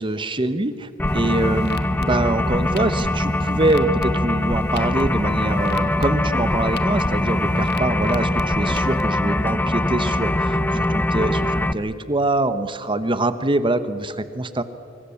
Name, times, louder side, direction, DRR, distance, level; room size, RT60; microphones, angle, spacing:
voice 1, 0.0-14.6, right 2 dB, 25° right, 12 dB, 1.2 m, -24 dB
sound 1, 1.0-9.0, left 1 dB, 55° left, 1.3 m, -34 dB
sound 2, 1.0-11.7, left 1 dB, 10° left, 0.7 m, -22 dB
25.5 x 24.0 x 7.2 m, 2.6 s
head